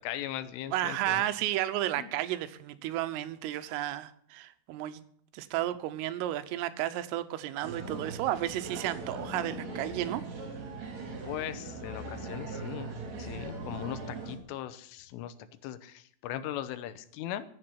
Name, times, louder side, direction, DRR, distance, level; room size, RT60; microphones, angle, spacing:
voice 1, 0.0-1.2 2.0-2.1 11.2-12.9 13.2-15.3 15.6-17.5, left 12 dB, 80° left, 13 dB, 3.4 m, -39 dB
voice 2, 0.7-5.0 5.3-10.2 13.3-13.5, right 13 dB, 85° right, 12 dB, 3.5 m, -32 dB
sound 1, 7.6-14.4, right 3 dB, 40° right, 3.5 m, -40 dB
15.5 x 7.8 x 9.8 m, 0.64 s
omnidirectional pair, 5.8 m